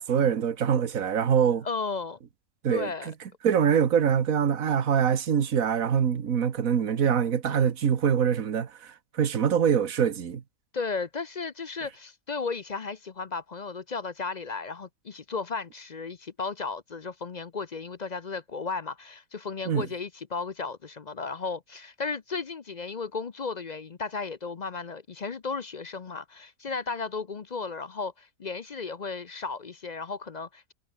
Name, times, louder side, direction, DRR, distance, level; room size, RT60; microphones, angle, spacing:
voice 1, 0.0-1.7 2.6-2.9 3.4-10.4 19.7-19.9, right 8 dB, 75° right, 1.8 m, -24 dB
voice 2, 1.6-2.2 2.7-3.1 7.4-7.7 10.7-30.7, left 4 dB, 40° left, 0.6 m, -34 dB
omnidirectional pair, 1.5 m